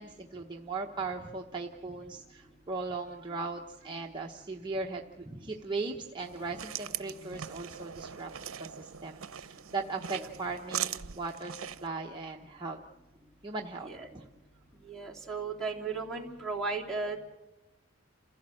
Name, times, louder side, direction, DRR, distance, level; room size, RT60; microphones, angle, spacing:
voice 1, 0.0-8.3 8.6-12.8 13.4-14.2, right 3 dB, 20° right, 0 dB, 0.9 m, -38 dB
sound 1, 6.2-11.9, right 10 dB, 75° right, 0.7 m, -40 dB
voice 2, 14.8-17.2, right 4 dB, 5° left, 0 dB, 3.2 m, -35 dB
29.0 x 16.0 x 7.6 m, 1.1 s
head